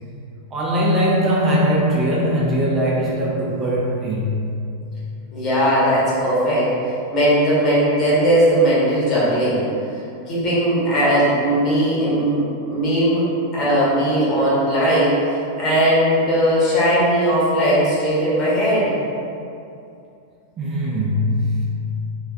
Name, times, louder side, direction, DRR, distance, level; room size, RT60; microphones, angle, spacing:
voice 1, 0.5-4.5 20.6-21.7, equal, 25° right, -4 dB, 0.5 m, -20 dB
voice 2, 5.3-6.7 7.1-9.7 10.3-13.2 13.5-18.9, equal, 35° left, -9 dB, 1.4 m, -18 dB
3.3 x 3.2 x 2.4 m, 2.6 s
figure-of-eight pair, 90°, 0 cm